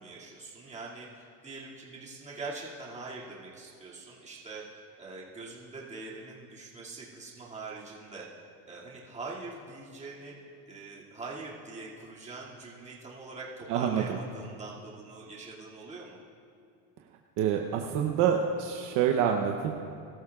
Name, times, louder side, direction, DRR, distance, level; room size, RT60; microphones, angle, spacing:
voice 1, 0.0-8.3 8.6-10.4 10.7-16.2, right 3 dB, 20° right, -5 dB, 2.4 m, -43 dB
voice 2, 13.7-14.0 17.4-19.8, right 8 dB, 50° right, 2 dB, 0.9 m, -27 dB
22.0 x 13.5 x 2.4 m, 2.5 s
cardioid pair, 140°, 38 cm